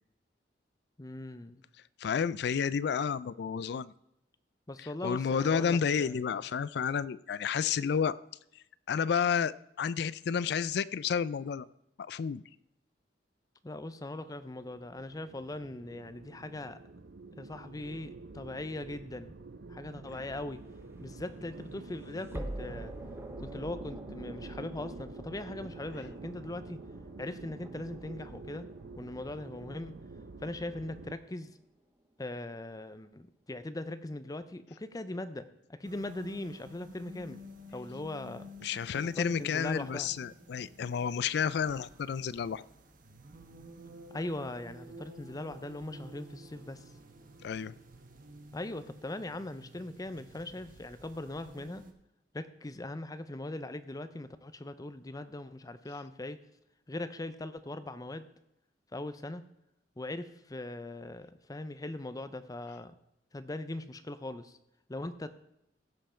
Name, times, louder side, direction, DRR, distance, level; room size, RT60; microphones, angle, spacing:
voice 1, 1.0-1.6 4.7-6.2 13.6-16.8 17.3-19.3 19.7-20.6 21.0-22.9 23.4-26.8 27.2-28.7 29.0-30.0 30.4-31.6 32.2-35.5 35.8-37.4 37.7-38.5 39.0-40.1 44.1-46.9 48.5-51.9 52.3-56.4 56.9-58.3 58.9-59.4 60.0-62.9 63.3-64.6 64.9-65.4, left 2 dB, 20° left, 11 dB, 0.6 m, -40 dB
voice 2, 2.0-3.9 5.0-8.2 8.9-11.7 12.0-12.4 38.6-42.6 47.4-47.7, left 7 dB, 65° left, 18 dB, 0.4 m, -31 dB
sound 1, 14.1-31.1, right 3 dB, 75° right, 0.7 m, -48 dB
sound 2, 20.5-31.5, right 1 dB, 15° right, 0.8 m, -47 dB
sound 3, 35.8-51.9, equal, 50° right, 1.2 m, -51 dB
16.0 x 5.6 x 4.4 m, 0.84 s
head